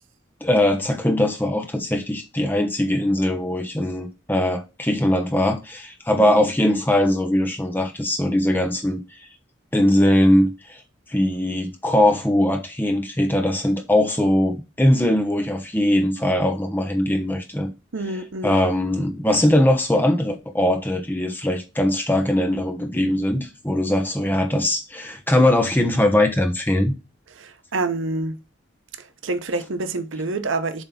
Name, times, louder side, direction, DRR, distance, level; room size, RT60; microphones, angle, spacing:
voice 1, 0.4-9.0 9.7-10.8 11.1-17.7 18.4-27.0, left 1 dB, 10° left, 1.1 m, -21 dB
voice 2, 17.9-18.7 27.4-28.4 29.0-30.8, right 2 dB, 85° right, 0.9 m, -27 dB
7.3 x 3.4 x 5.7 m
head